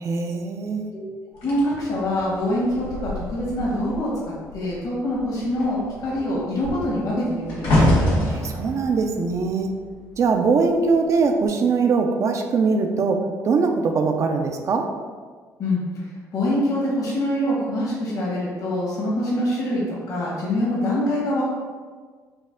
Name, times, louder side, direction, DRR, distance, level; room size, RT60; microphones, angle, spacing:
voice 1, 0.0-0.9 8.3-9.7 10.2-14.9, right 4 dB, 45° right, 4 dB, 0.4 m, -22 dB
sound 1, 1.4-4.1 4.4-4.8 5.1-10.4 11.2-11.4, left 1 dB, 90° left, 1.4 m, -25 dB
voice 2, 1.4-7.8 15.6-15.8 16.3-19.8 20.1-21.5, left 1 dB, 55° left, -6 dB, 1.3 m, -24 dB
4.2 x 2.3 x 3.6 m, 1.5 s
cardioid pair, 100°, 7 cm